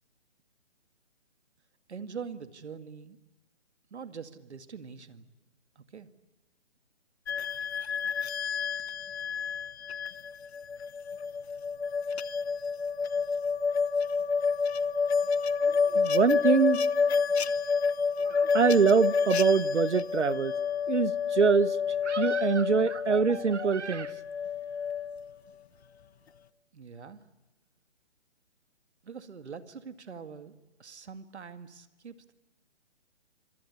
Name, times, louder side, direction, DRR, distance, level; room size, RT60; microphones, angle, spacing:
voice 1, 1.9-3.2 3.9-5.3 5.8-6.1 26.7-27.2 29.0-30.5 30.8-32.3, right 6 dB, 70° right, 2.1 m, -43 dB
sound 1, 7.3-25.2, left 5 dB, 65° left, 1.0 m, -29 dB
voice 2, 15.6-16.8 18.3-20.5 20.9-21.8 22.0-24.1, right 5 dB, 90° right, 1.1 m, -24 dB
27.0 x 21.5 x 8.4 m
hypercardioid pair, 145°, 34 cm